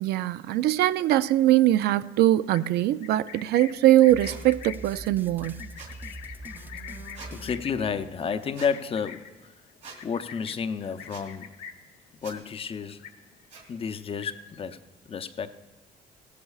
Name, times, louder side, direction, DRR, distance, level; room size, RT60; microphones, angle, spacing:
voice 1, 0.0-5.7, right 14 dB, 75° right, 0.4 m, -22 dB
Livestock farm animals working animals, 2.4-12.0 12.3-12.6 12.9-13.6 13.9-14.6, left 8 dB, 85° left, 1.1 m, -45 dB
sound 1, 4.1-8.4, right 2 dB, 10° right, 0.4 m, -43 dB
sound 2, 4.2-4.4 5.8-6.0 7.1-7.3 8.5-8.7 9.8-10.0 11.1-11.3 12.2-12.4 13.5-13.6, right 5 dB, 45° right, 2.5 m, -44 dB
voice 2, 7.3-9.3 10.0-11.5 12.2-13.0 13.7-14.8 15.1-15.6, left 6 dB, 35° left, 0.6 m, -31 dB
16.0 x 13.5 x 2.4 m
cardioid pair, 110°, 17 cm